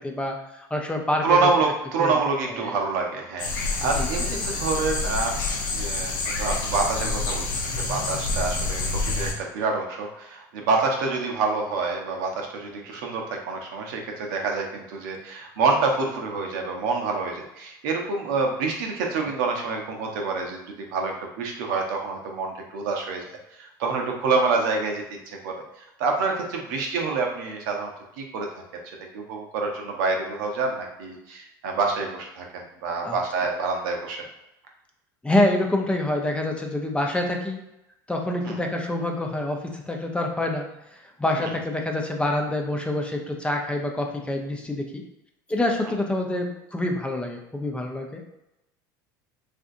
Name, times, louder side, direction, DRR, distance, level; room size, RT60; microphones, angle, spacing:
voice 1, 0.0-1.4 2.0-2.2 2.5-2.7 4.0-4.4 33.0-33.2 35.2-37.6 38.1-40.6 41.2-45.0 45.5-48.2, left 1 dB, 10° left, 2 dB, 0.5 m, -26 dB
voice 2, 1.2-5.4 5.7-23.2 23.6-25.6 26.0-28.5 28.7-28.8 29.1-34.2 38.5-38.6 41.4-41.5, right 4 dB, 75° right, 1 dB, 0.7 m, -27 dB
sound 1, 3.4-9.3, left 3 dB, 85° left, 0.6 m, -27 dB
3.6 x 2.5 x 2.5 m, 0.88 s
hypercardioid pair, 90°, 11 cm